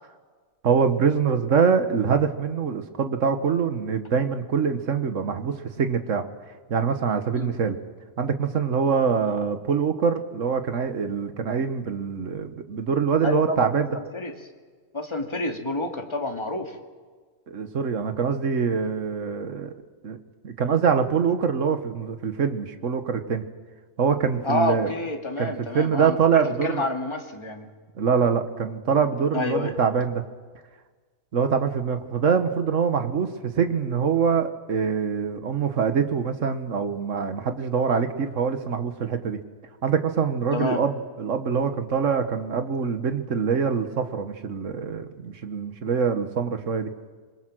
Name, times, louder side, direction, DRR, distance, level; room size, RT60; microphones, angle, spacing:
voice 1, 0.6-6.2 6.7-7.8 8.2-14.0 17.5-19.7 20.0-20.2 20.4-23.4 24.0-24.9 25.4-26.9 28.0-30.2 31.3-33.3 33.5-39.4 39.8-46.9, right 6 dB, 60° right, 8 dB, 1.6 m, -24 dB
voice 2, 13.2-13.7 13.9-14.3 14.9-16.7 24.4-27.7 29.3-29.7 40.5-40.8, left 2 dB, 20° left, 3 dB, 2.0 m, -28 dB
27.0 x 21.5 x 6.3 m, 1.5 s
omnidirectional pair, 1.5 m